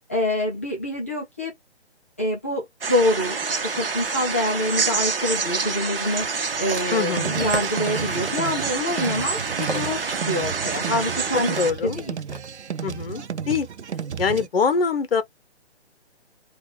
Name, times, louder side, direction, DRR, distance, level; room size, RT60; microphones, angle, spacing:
voice 1, 0.1-1.5 2.2-6.3 6.6-11.6 11.8-12.1, left 1 dB, 15° left, 0.4 m, -26 dB
sound 1, 2.8-11.7, right 5 dB, 55° right, 0.9 m, -27 dB
sound 2, 6.1-12.5 13.2-13.3, right 2 dB, 40° right, 1.7 m, -37 dB
voice 2, 6.9-7.4 11.6-12.0 12.8-13.7 14.2-15.2, left 5 dB, 60° left, 0.7 m, -23 dB
sound 3, 7.1-14.5, right 7 dB, 80° right, 0.5 m, -32 dB
3.7 x 2.4 x 3.7 m
figure-of-eight pair, 140°, 33 cm